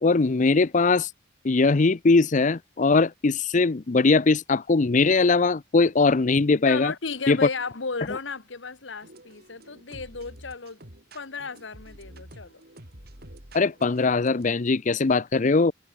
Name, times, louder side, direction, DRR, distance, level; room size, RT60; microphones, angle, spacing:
voice 1, 0.0-1.1 1.4-6.9 7.3-7.4 13.5-15.7, left 3 dB, 40° left, 0.6 m, -21 dB
voice 2, 6.6-10.8 11.1-12.6, left 4 dB, 90° left, 1.5 m, -34 dB
sound 1, 9.0-14.5, right 1 dB, 55° right, 5.8 m, -48 dB
head